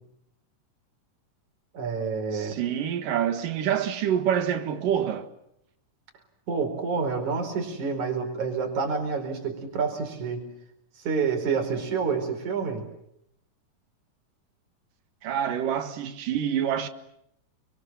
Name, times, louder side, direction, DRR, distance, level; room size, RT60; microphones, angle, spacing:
voice 1, 1.7-2.6 6.5-10.5 11.0-12.8, right 5 dB, 60° right, 6.0 m, -28 dB
voice 2, 2.3-5.3 15.2-16.9, right 9 dB, 80° right, 3.3 m, -27 dB
29.5 x 25.5 x 7.4 m
omnidirectional pair, 3.8 m